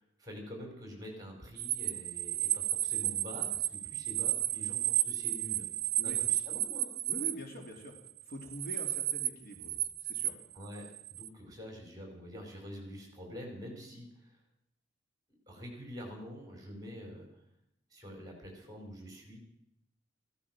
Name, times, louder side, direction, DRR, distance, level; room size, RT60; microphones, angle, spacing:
voice 1, 0.0-5.7 6.0-6.9 10.5-14.4 15.5-17.3 17.9-19.4, equal, 20° right, 1 dB, 4.6 m, -46 dB
sound 1, 1.6-7.3 8.1-9.3 9.5-11.3, right 12 dB, 50° right, 0.5 m, -33 dB
voice 2, 7.1-7.9 8.3-10.3, right 1 dB, 50° left, 1 dB, 2.8 m, -45 dB
15.5 x 13.5 x 6.1 m, 0.79 s
head